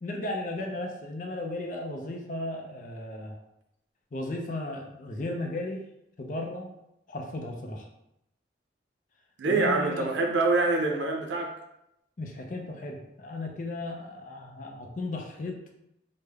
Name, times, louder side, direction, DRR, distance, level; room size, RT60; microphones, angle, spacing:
voice 1, 0.0-3.4 4.1-5.8 6.2-6.7 7.1-7.9 9.4-10.1 12.2-15.6, left 2 dB, 45° left, 2 dB, 0.5 m, -35 dB
voice 2, 9.4-11.5, right 3 dB, 85° right, 2 dB, 0.5 m, -25 dB
3.4 x 2.1 x 3.3 m, 0.82 s
head